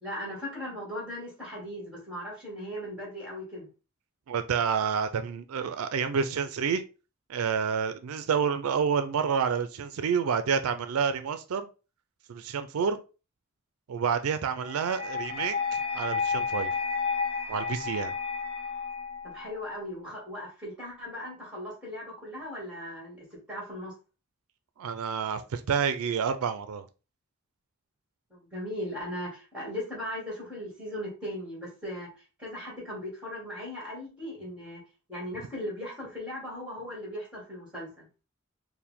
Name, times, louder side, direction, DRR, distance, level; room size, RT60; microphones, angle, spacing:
voice 1, 0.0-3.7 19.2-23.9 28.3-34.8 35.1-38.1, left 1 dB, 5° right, 1.8 m, -38 dB
voice 2, 4.3-6.8 7.3-11.7 12.3-13.0 13.9-16.8 17.5-18.1 24.8-26.9, right 6 dB, 80° right, 0.4 m, -29 dB
sound 1, 14.6-19.6, left 5 dB, 45° left, 0.6 m, -31 dB
4.6 x 2.1 x 3.5 m
head